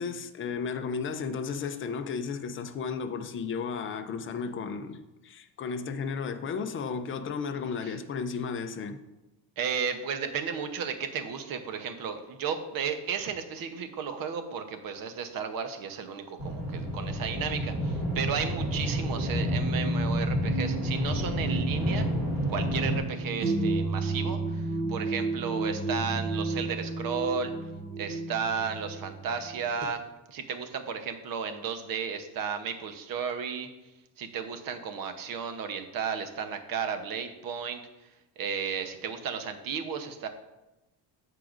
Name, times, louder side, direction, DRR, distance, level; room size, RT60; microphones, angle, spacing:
voice 1, 0.0-9.0, left 5 dB, 30° left, 0.5 m, -34 dB
voice 2, 9.6-22.1 22.5-27.5 28.0-30.0 30.3-33.7 34.2-37.8 38.4-40.3, right 6 dB, 50° right, 0.9 m, -34 dB
sound 1, 16.4-23.0, equal, 5° right, 2.5 m, -30 dB
sound 2, 19.1-29.8, right 2 dB, 20° right, 0.8 m, -32 dB
14.0 x 4.9 x 2.5 m
cardioid pair, 155°, 43 cm